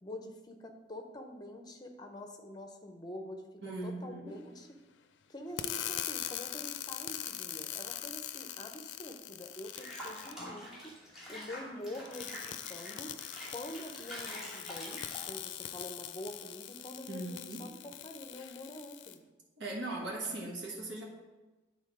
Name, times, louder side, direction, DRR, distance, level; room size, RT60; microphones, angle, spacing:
voice 1, 0.0-3.5 3.8-4.8 5.3-10.9 11.3-12.4 12.7-13.1 13.5-15.0 15.3-19.2, left 1 dB, 25° left, 4 dB, 0.7 m, -46 dB
voice 2, 3.6-4.4 17.1-17.7 19.6-21.0, right 2 dB, 85° right, -3 dB, 1.4 m, -39 dB
sound 1, 5.6-10.3 12.1-19.1, left 11 dB, 80° left, 0.4 m, -42 dB
Water / Bathtub (filling or washing), 9.7-15.7, equal, ahead, 2.3 m, -46 dB
8.8 x 3.9 x 4.9 m, 1.1 s
head